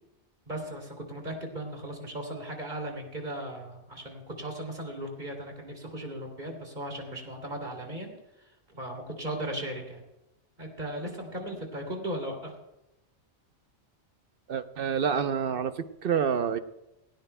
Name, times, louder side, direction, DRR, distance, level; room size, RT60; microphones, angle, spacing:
voice 1, 0.5-8.1 8.7-10.0 10.6-12.5, right 1 dB, 45° right, 1 dB, 3.0 m, -37 dB
voice 2, 14.5-15.7 16.0-16.6, right 7 dB, 60° right, 10 dB, 0.9 m, -27 dB
18.0 x 18.0 x 2.2 m, 0.93 s
omnidirectional pair, 1.1 m